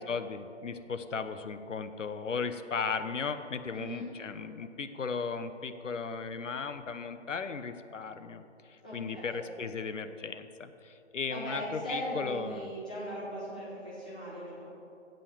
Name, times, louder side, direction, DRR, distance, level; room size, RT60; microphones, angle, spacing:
voice 1, 0.0-12.7, left 5 dB, 80° left, 10 dB, 1.0 m, -36 dB
voice 2, 3.7-4.1 8.8-9.4 11.3-14.6, equal, 5° left, -10 dB, 0.9 m, -39 dB
16.0 x 5.6 x 7.3 m, 2.8 s
hypercardioid pair, 175°, 37 cm